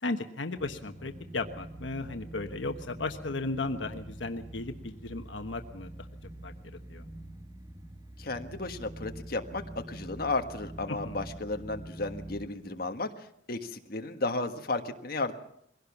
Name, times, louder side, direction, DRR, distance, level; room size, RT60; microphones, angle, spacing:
voice 1, 0.0-5.9 6.4-6.5 6.9-7.1 11.0-11.2, left 3 dB, 85° left, 7 dB, 1.2 m, -35 dB
sound 1, 0.6-12.5, right 1 dB, 20° right, 1.6 m, -45 dB
voice 2, 8.2-15.3, left 2 dB, 55° left, 5 dB, 1.6 m, -34 dB
22.0 x 17.0 x 7.2 m, 0.71 s
head